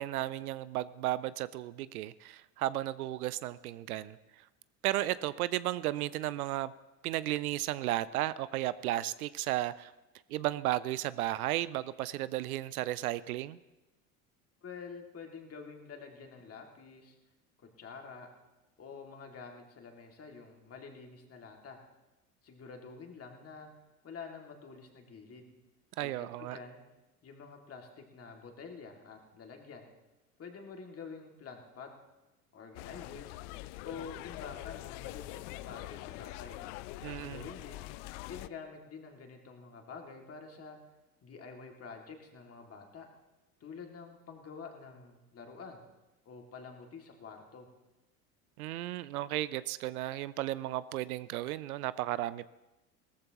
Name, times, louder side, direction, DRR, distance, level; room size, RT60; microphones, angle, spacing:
voice 1, 0.0-4.2 4.8-6.7 7.0-9.9 10.3-13.6 26.0-26.6 37.0-37.5 48.6-52.5, right 15 dB, 75° right, 17 dB, 0.6 m, -34 dB
voice 2, 14.6-17.1 17.6-18.3 18.8-21.8 22.4-23.7 24.0-25.5 26.0-26.8 27.2-29.9 30.4-31.9 32.5-33.4 33.8-36.6 37.0-37.8 38.2-40.8 41.2-43.1 43.6-45.8 46.3-47.7, left 5 dB, 30° left, 2 dB, 2.4 m, -48 dB
sound 1, 32.7-38.5, left 18 dB, 55° left, 0.5 m, -44 dB
18.5 x 14.0 x 3.0 m, 1.0 s
hypercardioid pair, 75°, 45 cm